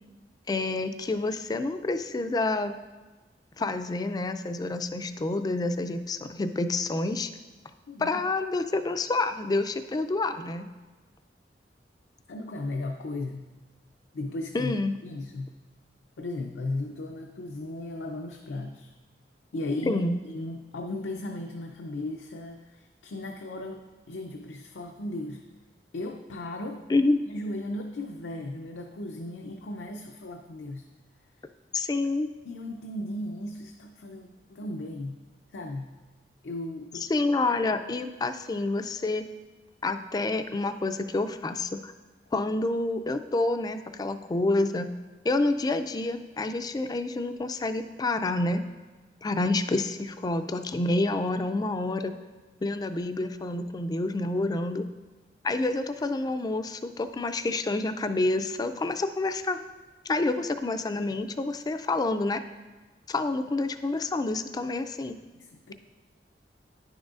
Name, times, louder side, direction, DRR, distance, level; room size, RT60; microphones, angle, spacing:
voice 1, 0.5-2.7 3.6-7.3 8.0-10.7 14.5-15.0 19.9-20.2 26.9-27.2 31.7-32.3 37.1-39.2 39.8-41.9 42.3-44.9 45.2-48.6 49.2-52.1 52.6-54.9 55.4-59.6 60.1-62.4 63.1-65.2, left 2 dB, 25° left, 9 dB, 0.3 m, -28 dB
voice 2, 7.9-8.2 12.3-13.5 14.1-14.7 15.0-15.5 16.2-18.9 19.5-23.8 24.1-25.4 25.9-26.8 27.2-30.9 32.5-35.2 35.5-36.0 36.4-37.1 65.3-65.7, left 2 dB, 85° left, 2 dB, 0.5 m, -36 dB
10.0 x 6.2 x 2.4 m, 1.3 s
head